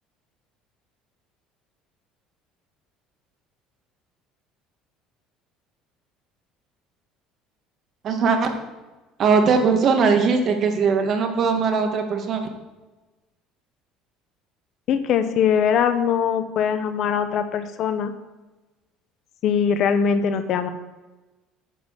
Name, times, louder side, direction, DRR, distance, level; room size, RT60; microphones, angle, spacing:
voice 1, 8.0-8.5 9.2-12.4, right 5 dB, 50° right, 5 dB, 1.6 m, -20 dB
voice 2, 14.9-18.1 19.4-20.7, left 7 dB, 60° left, 10 dB, 0.9 m, -21 dB
9.3 x 4.4 x 7.2 m, 1.1 s
supercardioid pair, 95°, 0 cm